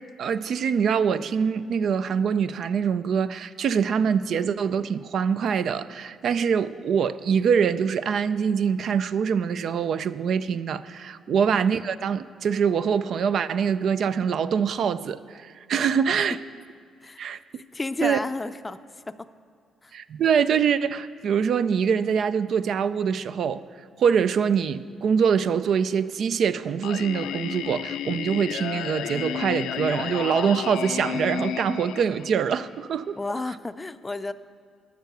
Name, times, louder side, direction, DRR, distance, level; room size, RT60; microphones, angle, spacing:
voice 1, 0.2-16.4 17.2-17.6 18.0-18.2 19.9-23.6 24.0-33.2, right 7 dB, 65° right, 13 dB, 0.4 m, -24 dB
voice 2, 11.3-11.6 17.0-17.2 17.5-18.8 19.1-19.2 19.8-19.9 33.2-34.3, left 3 dB, 20° left, 11 dB, 0.5 m, -32 dB
Singing, 26.8-32.8, left 9 dB, 85° left, 0.5 m, -32 dB
13.0 x 6.6 x 6.8 m, 2.2 s
cardioid pair, 90°, 0 cm